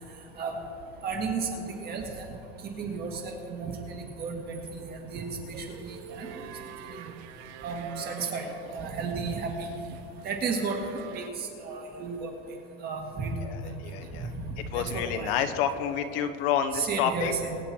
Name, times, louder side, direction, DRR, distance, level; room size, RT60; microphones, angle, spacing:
voice 1, 1.0-2.3 2.6-4.6 4.9-6.3 6.8-7.1 7.6-8.5 8.7-9.8 10.2-12.3 12.8-13.3 13.6-13.7 14.3-14.4 14.7-15.4 16.7-17.6, right 4 dB, 30° right, 2 dB, 2.0 m, -33 dB
sound 1, 5.5-11.3, right 9 dB, 80° right, 1.0 m, -46 dB
voice 2, 13.4-14.3 14.7-17.3, left 9 dB, 65° left, 9 dB, 1.1 m, -29 dB
23.5 x 9.0 x 4.4 m, 2.8 s
supercardioid pair, 160°, 32 cm